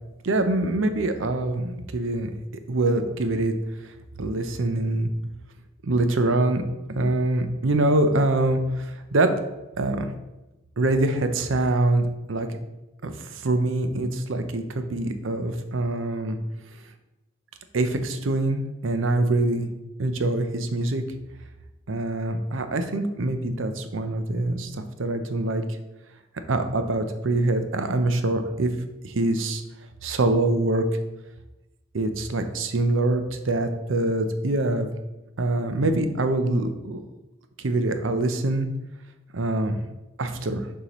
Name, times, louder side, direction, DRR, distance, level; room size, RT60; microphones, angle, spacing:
voice 1, 0.2-2.3 2.7-3.6 4.2-5.1 5.8-6.6 6.9-9.3 9.8-10.1 10.8-12.5 13.0-16.4 17.7-19.7 20.0-21.0 21.9-25.6 26.5-28.7 29.0-29.6 30.0-30.8 31.9-34.9 35.4-37.0 37.6-38.7 39.3-39.8 40.2-40.7, right 2 dB, 85° right, 8 dB, 0.7 m, -24 dB
6.7 x 5.6 x 3.0 m, 1.0 s
head